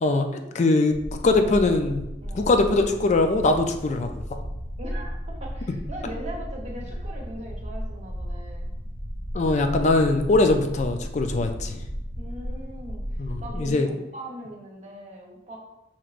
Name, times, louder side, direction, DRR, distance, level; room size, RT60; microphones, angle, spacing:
voice 1, 0.0-2.0 2.3-4.1 9.3-11.8 13.2-13.9, left 2 dB, 40° left, 5 dB, 0.4 m, -22 dB
sound 1, 0.9-13.7, equal, 75° left, 0.9 m, -34 dB
voice 2, 4.8-8.7 12.2-15.6, equal, 35° right, -1 dB, 1.0 m, -39 dB
5.9 x 2.9 x 2.5 m, 0.93 s
head